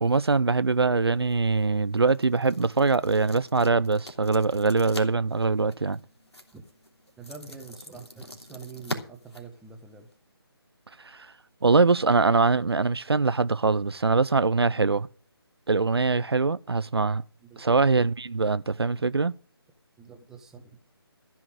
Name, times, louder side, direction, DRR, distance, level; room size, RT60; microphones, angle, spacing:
voice 1, 0.0-6.0 11.0-11.3 11.6-15.1 15.7-17.2 17.6-19.3, right 4 dB, 70° right, 0.5 m, -23 dB
sound 1, 1.1-10.2, equal, 85° left, 3.0 m, -43 dB
voice 2, 7.2-10.1 17.4-17.8 20.0-20.8, right 5 dB, 5° right, 1.2 m, -45 dB
14.0 x 5.8 x 8.9 m
figure-of-eight pair, 150°, 14 cm